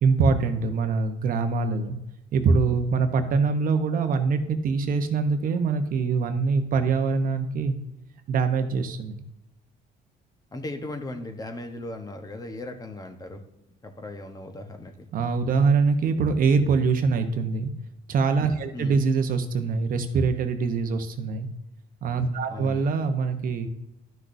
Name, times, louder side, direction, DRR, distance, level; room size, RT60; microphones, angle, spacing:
voice 1, 0.0-2.0 2.3-7.7 8.3-9.2 15.1-17.7 18.1-21.5 22.0-23.7, right 4 dB, 55° right, 8 dB, 0.9 m, -24 dB
voice 2, 10.5-13.4 13.8-15.1 18.7-19.0 22.5-22.8, left 2 dB, 20° left, 6 dB, 1.1 m, -37 dB
12.0 x 6.2 x 2.6 m, 0.89 s
cardioid pair, 110°, 17 cm